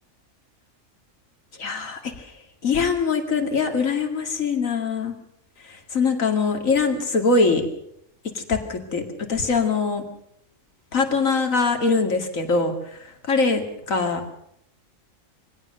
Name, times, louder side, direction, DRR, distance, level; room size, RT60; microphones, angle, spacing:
voice 1, 1.6-2.3 2.6-5.2 5.7-7.6 8.3-10.0 10.9-13.0 13.3-14.4, left 4 dB, 80° left, 5 dB, 2.7 m, -23 dB
23.0 x 17.5 x 6.7 m, 0.71 s
omnidirectional pair, 1.4 m